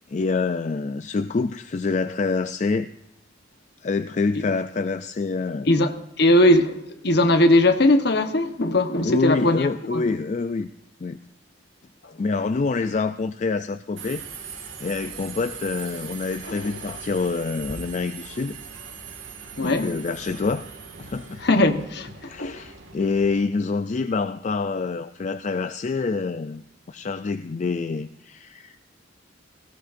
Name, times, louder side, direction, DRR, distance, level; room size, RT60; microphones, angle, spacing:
voice 1, 0.1-2.9 3.8-5.8 9.0-10.7 11.0-11.2 12.2-18.6 19.6-20.7 21.0-21.4 22.3-28.8, left 4 dB, 40° left, 0.4 m, -26 dB
voice 2, 5.7-10.1 16.4-16.8 19.6-19.9 21.4-22.6, left 1 dB, 60° left, 1.2 m, -20 dB
Subway metro underground, 14.0-23.4, right 5 dB, 85° right, 2.0 m, -40 dB
18.5 x 17.0 x 2.6 m
head